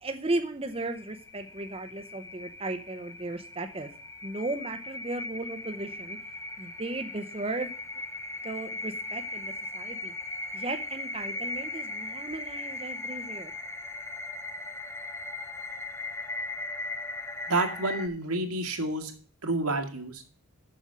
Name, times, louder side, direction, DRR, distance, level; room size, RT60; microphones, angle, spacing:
voice 1, 0.0-3.9 4.2-6.2 6.6-7.7 8.4-10.1 10.5-13.5, right 2 dB, 25° right, 6 dB, 0.6 m, -35 dB
sound 1, 0.7-18.1, left 2 dB, 10° left, 0.7 m, -38 dB
voice 2, 17.5-19.1 19.4-20.2, right 2 dB, 90° right, 5 dB, 2.0 m, -29 dB
7.4 x 7.0 x 7.3 m, 0.43 s
head